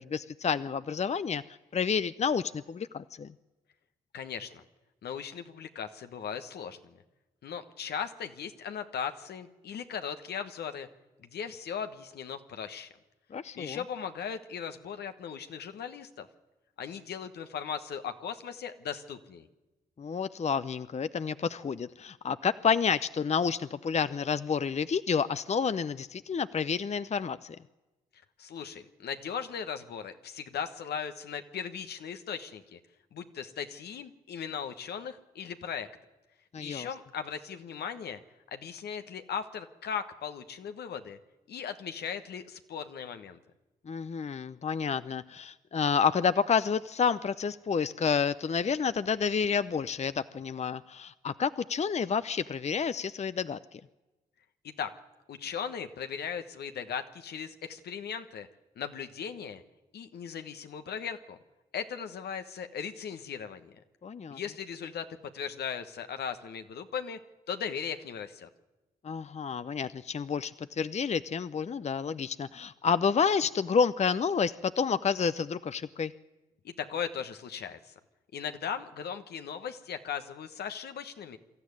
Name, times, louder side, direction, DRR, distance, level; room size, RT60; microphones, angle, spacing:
voice 1, 0.0-1.4 1.7-3.3 13.3-13.8 20.0-27.6 36.5-36.9 43.9-53.8 64.0-64.4 69.0-76.1, left 6 dB, 40° left, 14 dB, 0.6 m, -29 dB
voice 2, 4.1-4.6 5.0-7.0 7.4-10.9 11.2-12.9 13.5-16.3 16.8-19.5 28.4-32.8 33.1-35.9 36.6-38.2 38.5-41.2 41.5-43.4 54.6-54.9 55.3-58.5 58.8-59.6 59.9-61.4 61.7-63.7 64.3-65.1 65.3-67.2 67.5-68.5 76.6-77.9 78.3-81.4, left 7 dB, 80° left, 8 dB, 1.2 m, -38 dB
23.0 x 13.5 x 9.7 m, 1.1 s
supercardioid pair, 45°, 17 cm